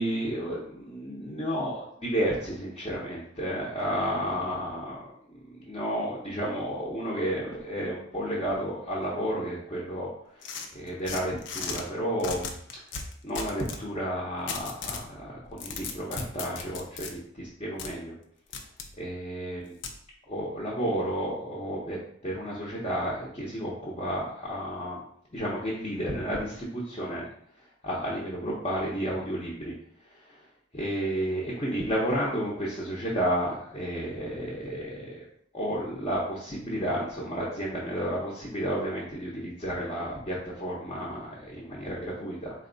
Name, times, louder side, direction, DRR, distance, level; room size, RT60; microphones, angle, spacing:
voice 1, 0.0-5.1 5.7-10.1 10.7-12.5 13.2-18.1 19.0-19.8 20.3-25.0 25.3-27.3 27.8-29.7 30.7-35.2 35.5-42.5, equal, 30° left, -7 dB, 0.7 m, -31 dB
sound 1, 10.4-11.8 12.2-13.8 14.5-15.1 15.5-17.1 17.8-17.9 18.5-18.9 19.8-20.0, left 5 dB, 65° left, 0.5 m, -36 dB
4.0 x 2.2 x 3.8 m, 0.64 s
head